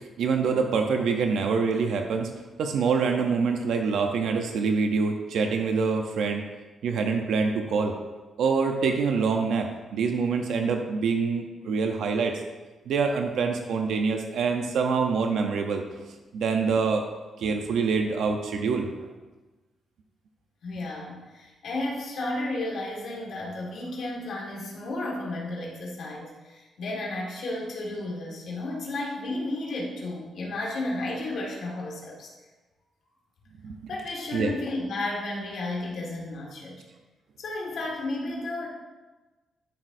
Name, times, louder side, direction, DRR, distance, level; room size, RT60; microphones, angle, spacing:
voice 1, 0.2-2.3 2.6-6.4 6.8-7.9 8.4-12.4 12.9-16.1 16.3-17.1 17.4-19.1 33.6-33.8 34.3-34.5, right 5 dB, 80° right, 4 dB, 0.8 m, -25 dB
voice 2, 20.6-32.3 33.9-36.8 37.4-38.7, left 2 dB, 65° left, -2 dB, 1.8 m, -33 dB
11.5 x 6.3 x 2.7 m, 1.2 s
cardioid pair, 120°, 0 cm